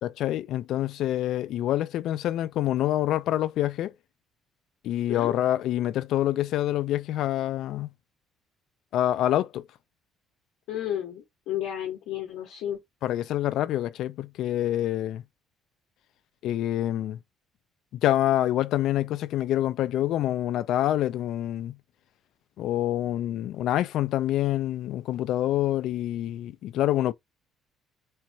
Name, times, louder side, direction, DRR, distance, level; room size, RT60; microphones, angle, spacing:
voice 1, 0.0-3.9 4.8-7.9 8.9-9.6 13.0-15.2 16.4-17.2 18.0-21.7 22.6-27.1, left 13 dB, 65° left, 0.4 m, -26 dB
voice 2, 10.7-12.8, left 11 dB, 85° left, 1.1 m, -32 dB
4.4 x 2.3 x 2.6 m
cardioid pair, 160°, 0 cm